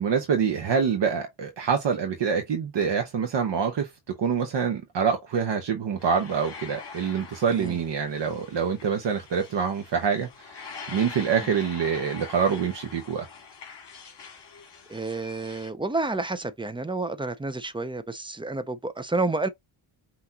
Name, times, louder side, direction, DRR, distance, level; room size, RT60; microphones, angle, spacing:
voice 1, 0.0-3.9 4.2-13.3, right 6 dB, 55° right, 1.0 m, -26 dB
sound 1, 6.0-15.7, left 5 dB, 55° left, 2.0 m, -44 dB
voice 2, 14.9-19.5, right 3 dB, 10° right, 0.4 m, -30 dB
5.9 x 2.9 x 2.7 m
wide cardioid pair, 150°, 49 cm